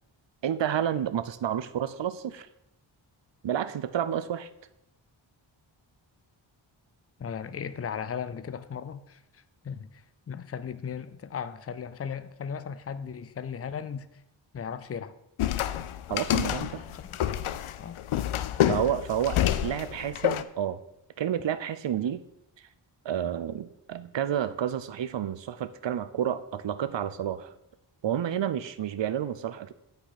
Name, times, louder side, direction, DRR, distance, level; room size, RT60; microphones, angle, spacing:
voice 1, 0.4-2.5 3.4-4.5 16.1-16.8 18.7-20.8 21.2-22.2 23.0-27.5 28.0-29.7, right 9 dB, 65° right, 0.6 m, -30 dB
voice 2, 7.2-14.1 14.5-15.1 16.9-17.0 17.8-18.0, left 7 dB, 30° left, 0.4 m, -37 dB
sound 1, 15.4-20.4, left 11 dB, 85° left, 0.6 m, -28 dB
8.7 x 5.1 x 5.8 m
wide cardioid pair, 140°, 48 cm